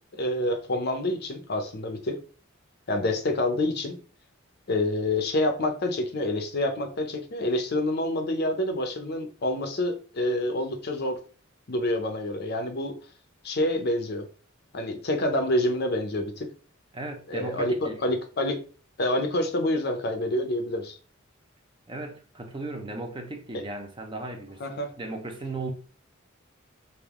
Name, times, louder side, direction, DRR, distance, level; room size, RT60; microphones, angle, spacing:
voice 1, 0.2-2.2 2.9-4.0 4.7-11.2 11.7-12.9 13.4-14.3 14.7-16.5 17.3-18.6 19.0-20.9 23.5-23.6 24.6-24.9, left 1 dB, 55° left, 0.7 m, -27 dB
voice 2, 16.9-18.0 21.9-25.7, right 2 dB, 25° right, 0.6 m, -36 dB
3.5 x 2.6 x 3.6 m
head